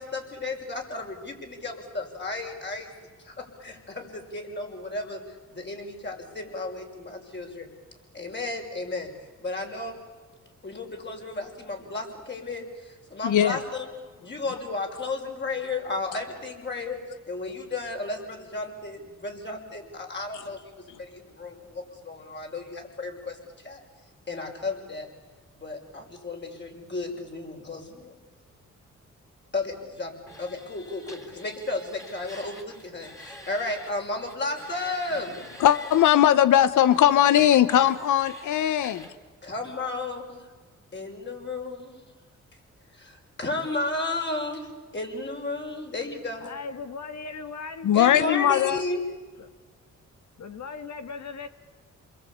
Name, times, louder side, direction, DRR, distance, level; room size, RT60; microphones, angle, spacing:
voice 1, 0.0-2.9 3.2-7.7 8.1-9.1 9.4-10.0 10.6-13.9 14.2-17.0 17.3-23.8 24.3-25.1 25.6-28.1 29.5-35.4 39.4-40.4 40.9-42.0 42.9-44.7 44.9-46.5 47.9-49.0, left 2 dB, 35° left, 5.9 m, -33 dB
voice 2, 13.2-13.6 20.3-20.4 35.6-39.1 47.8-48.8, left 11 dB, 90° left, 0.9 m, -20 dB
sound 1, 30.3-33.9 34.2-36.3 36.9-39.1, equal, 10° left, 3.6 m, -46 dB
voice 3, 46.4-47.9 49.4-49.5 50.4-51.5, left 4 dB, 65° left, 2.1 m, -38 dB
28.5 x 22.0 x 8.7 m
cardioid pair, 80°, 30 cm